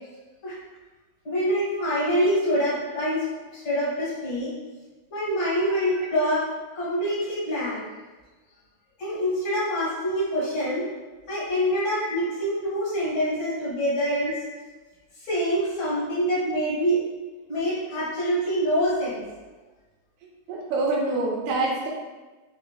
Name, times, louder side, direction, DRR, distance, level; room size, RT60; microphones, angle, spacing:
voice 1, 1.2-4.6 5.1-6.5 6.7-7.8 9.0-10.9 11.3-14.3 15.2-17.0 17.5-19.2, equal, 60° left, -9 dB, 2.2 m, -25 dB
voice 2, 5.8-6.2 10.4-10.5 13.3-13.4 14.1-14.2 20.5-21.9, right 3 dB, 75° right, -3 dB, 1.7 m, -27 dB
5.3 x 2.4 x 2.3 m, 1.2 s
omnidirectional pair, 4.0 m